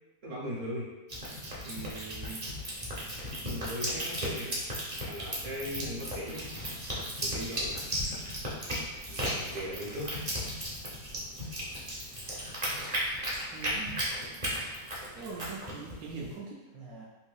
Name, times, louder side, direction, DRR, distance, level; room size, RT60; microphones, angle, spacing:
voice 1, 0.2-0.9 1.6-2.5 3.4-4.6 5.0-6.5 7.2-7.8 9.1-10.2, equal, 60° right, -7 dB, 1.3 m, -39 dB
sound 1, 1.1-16.3, equal, 30° right, 0.6 m, -36 dB
voice 2, 13.5-14.0 15.1-17.1, right 4 dB, 75° right, -4 dB, 1.0 m, -42 dB
3.9 x 2.6 x 2.3 m, 1.1 s
omnidirectional pair, 1.6 m